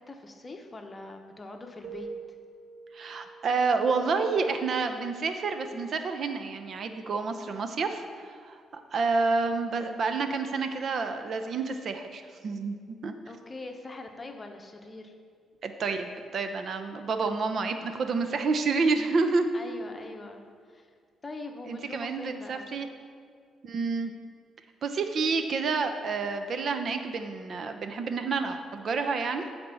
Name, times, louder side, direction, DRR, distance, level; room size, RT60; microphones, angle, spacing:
voice 1, 0.0-2.1 13.3-15.1 19.5-20.9 21.2-22.7, left 2 dB, 25° left, 4 dB, 0.9 m, -43 dB
Keyboard (musical), 1.8-3.8, right 5 dB, 30° right, 1.0 m, -44 dB
voice 2, 2.9-12.8 13.0-13.1 15.6-19.5 21.7-22.9 23.6-24.1 24.8-29.5, right 4 dB, 55° right, 7 dB, 0.7 m, -29 dB
8.5 x 4.4 x 7.0 m, 2.1 s
cardioid pair, 90°, 0 cm